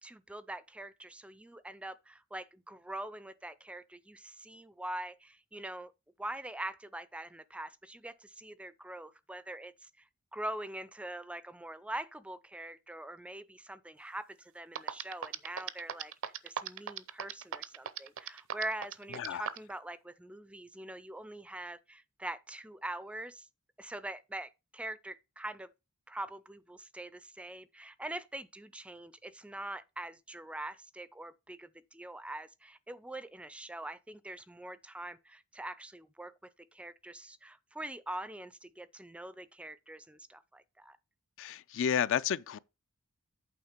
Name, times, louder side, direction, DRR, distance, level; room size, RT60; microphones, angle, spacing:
voice 1, 0.0-5.9 6.2-10.1 10.3-23.5 23.8-25.7 26.1-36.3 36.7-41.0, right 1 dB, 5° right, 0.4 m, -43 dB
sound 1, 14.4-14.5 14.7-19.7, right 8 dB, 60° right, 0.6 m, -37 dB
voice 2, 19.1-19.5 41.4-42.6, left 8 dB, 60° left, 0.4 m, -31 dB
8.6 x 3.6 x 6.5 m
head